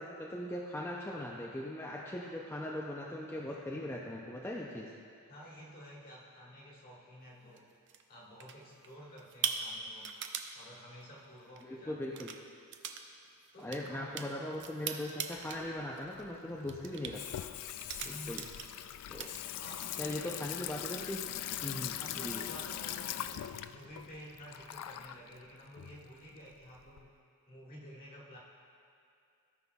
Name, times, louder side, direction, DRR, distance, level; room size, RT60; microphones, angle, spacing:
voice 1, 0.0-4.9 11.6-12.3 13.6-17.5 18.3-18.4 19.1-19.3 20.0-21.2 21.6-22.5, left 1 dB, 10° left, -3 dB, 0.4 m, -39 dB
voice 2, 5.2-7.6 8.1-10.2 10.5-12.2 13.5-14.2 18.0-18.6 19.5-20.7 22.0-27.1 27.5-28.4, equal, 45° left, -5 dB, 1.6 m, -51 dB
sound 1, 7.6-8.0 8.4-8.9 9.2-10.5 11.5-11.6 12.0-12.4 12.7-13.0 13.3-15.6 16.0-16.3 16.7-17.1 17.7-18.8 19.1-19.9, right 8 dB, 55° right, 0.5 m, -40 dB
Water tap faucet / Sink (filling or washing), 15.3-27.0, left 12 dB, 90° left, 0.3 m, -42 dB
16.5 x 5.6 x 2.3 m, 2.4 s
head